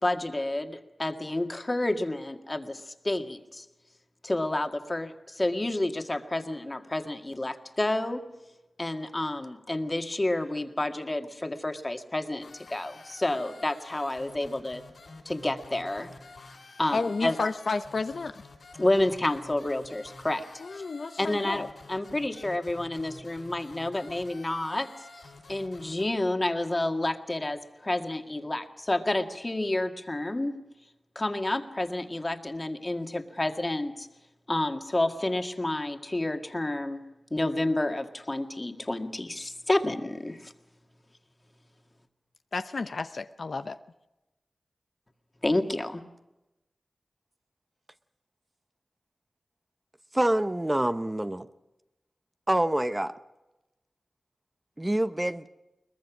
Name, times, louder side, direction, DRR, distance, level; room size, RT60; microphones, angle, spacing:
voice 1, 0.0-3.7 4.2-8.2 8.8-14.8 15.3-16.1 16.8-17.4 18.8-20.4 20.7-20.8 21.2-24.9 25.5-30.6 31.2-34.1 34.5-37.0 37.3-40.5 45.4-46.0, left 1 dB, 30° left, 6 dB, 1.9 m, -29 dB
sound 1, 12.4-26.0, left 3 dB, 85° left, 7.3 m, -49 dB
voice 2, 16.9-18.4 20.6-21.7 42.5-43.8, left 4 dB, 70° left, 10 dB, 0.7 m, -31 dB
voice 3, 50.1-51.5 52.5-53.1 54.8-55.5, right 1 dB, 20° right, 10 dB, 0.8 m, -26 dB
22.0 x 20.0 x 6.2 m, 0.99 s
cardioid pair, 50°, 0 cm